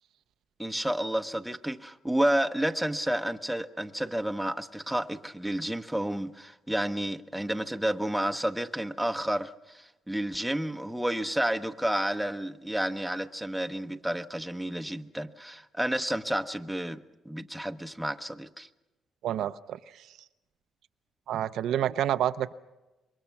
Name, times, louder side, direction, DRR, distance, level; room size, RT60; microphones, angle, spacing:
voice 1, 0.6-18.7, right 1 dB, ahead, 7 dB, 1.0 m, -30 dB
voice 2, 19.2-20.1 21.3-22.5, right 11 dB, 80° right, 10 dB, 0.7 m, -29 dB
27.0 x 22.5 x 5.9 m, 1.1 s
cardioid pair, 90°, 0 cm